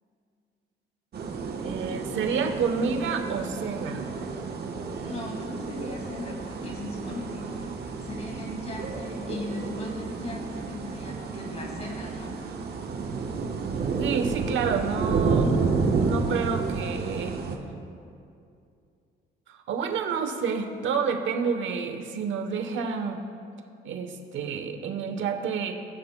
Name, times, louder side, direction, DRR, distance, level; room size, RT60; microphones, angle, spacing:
sound 1, 1.1-17.6, right 4 dB, 55° right, 1.1 m, -30 dB
voice 1, 1.6-4.0 14.0-15.5 16.0-17.4 19.5-23.2 23.8-25.7, right 5 dB, 75° right, 6 dB, 1.0 m, -29 dB
voice 2, 5.0-12.4, left 2 dB, 35° left, -1 dB, 2.3 m, -38 dB
20.5 x 6.8 x 2.2 m, 2.4 s
cardioid pair, 90°, 20 cm